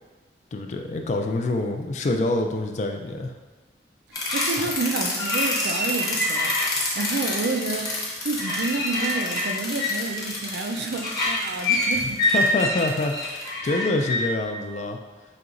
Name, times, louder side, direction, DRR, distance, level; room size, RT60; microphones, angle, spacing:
voice 1, 0.5-3.3 4.6-4.7 12.0-15.0, left 2 dB, 40° left, 4 dB, 0.3 m, -26 dB
sound 1, 4.1-14.2, left 2 dB, 20° left, 0.8 m, -26 dB
voice 2, 4.3-6.5 7.0-12.2, right 3 dB, 80° right, 4 dB, 0.4 m, -29 dB
5.1 x 2.8 x 2.5 m, 1.2 s
head